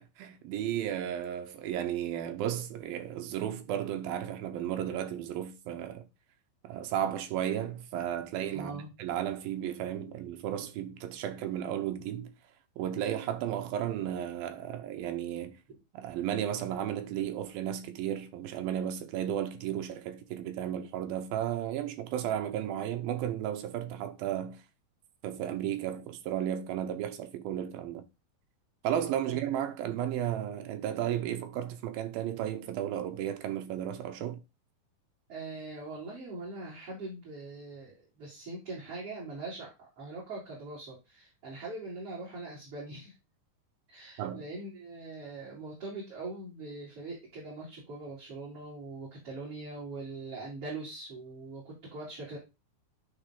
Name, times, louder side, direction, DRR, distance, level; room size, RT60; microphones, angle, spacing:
voice 1, 0.0-6.1 6.6-12.3 12.8-15.6 15.9-24.6 25.2-28.1 28.8-34.4 44.2-44.4, right 10 dB, 75° right, 2.5 m, -34 dB
voice 2, 8.5-8.9 29.3-29.4 35.3-43.1 43.9-52.4, right 2 dB, 35° right, 3.9 m, -42 dB
10.5 x 4.1 x 3.6 m
omnidirectional pair, 4.5 m